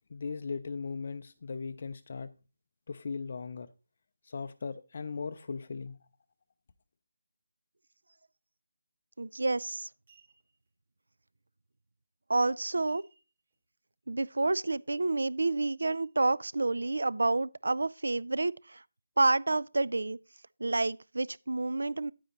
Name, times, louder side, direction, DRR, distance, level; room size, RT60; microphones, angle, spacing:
voice 1, 0.1-2.3 2.9-3.7 4.2-6.0, left 4 dB, 35° left, 0.4 m, -38 dB
sound 1, 9.2-9.4 9.9-10.7 12.9-13.5 13.9-14.0 14.4-14.7 15.8-16.6 17.2-17.3, right 5 dB, 35° right, 3.2 m, -65 dB
voice 2, 9.2-9.9 12.3-13.0 14.1-18.8 19.2-20.2 20.6-22.1, right 2 dB, 80° right, 0.3 m, -29 dB
9.3 x 9.2 x 3.0 m
figure-of-eight pair, 175°, 0 cm